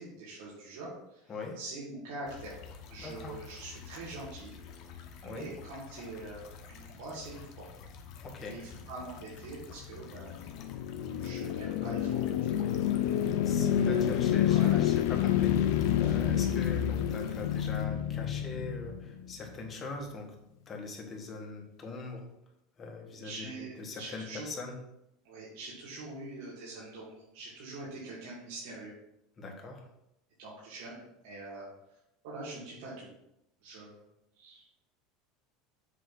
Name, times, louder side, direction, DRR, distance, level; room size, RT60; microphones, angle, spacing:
voice 1, 0.0-2.5 2.9-4.5 5.2-7.7 8.5-10.3 11.2-12.5 13.8-13.9 14.5-14.8 16.0-16.2 23.1-24.5 25.2-28.9 30.4-31.7 32.2-33.1 33.6-34.0 34.3-34.7, right 2 dB, 80° right, -8 dB, 2.5 m, -44 dB
sound 1, 2.3-17.9, left 6 dB, 50° left, 1.0 m, -49 dB
voice 2, 3.0-3.4 5.2-5.5 8.2-8.6 13.4-20.3 20.7-22.3 22.8-23.5 23.8-24.8 29.4-29.8, left 3 dB, 25° left, 1 dB, 1.6 m, -41 dB
sound 2, 10.2-19.5, left 10 dB, 75° left, 0.5 m, -28 dB
7.5 x 3.2 x 6.0 m, 0.82 s
supercardioid pair, 135°, 0 cm